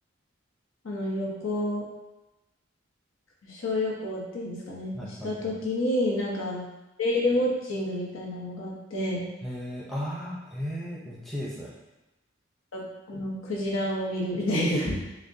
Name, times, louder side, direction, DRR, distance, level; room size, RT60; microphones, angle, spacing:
voice 1, 0.8-1.8 3.4-6.6 7.0-9.2 12.7-15.0, left 1 dB, 90° left, -3 dB, 0.9 m, -29 dB
voice 2, 4.9-5.6 9.4-11.7, equal, ahead, -6 dB, 0.6 m, -35 dB
6.2 x 2.2 x 2.6 m, 1.0 s
head